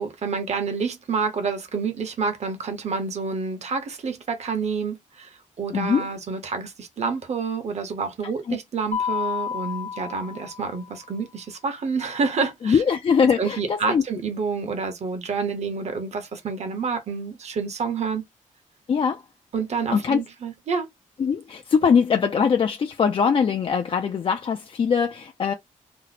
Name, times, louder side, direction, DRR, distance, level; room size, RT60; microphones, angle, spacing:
voice 1, 0.0-12.8 13.4-18.2 19.5-20.9, right 5 dB, 55° right, 0.9 m, -28 dB
voice 2, 5.7-6.1 8.5-8.6 12.6-14.0 18.9-19.2 19.9-20.2 21.2-25.5, left 6 dB, 40° left, 0.3 m, -22 dB
Mallet percussion, 8.9-11.0, left 7 dB, 60° left, 1.2 m, -30 dB
2.7 x 2.0 x 4.0 m
wide cardioid pair, 160°, 14 cm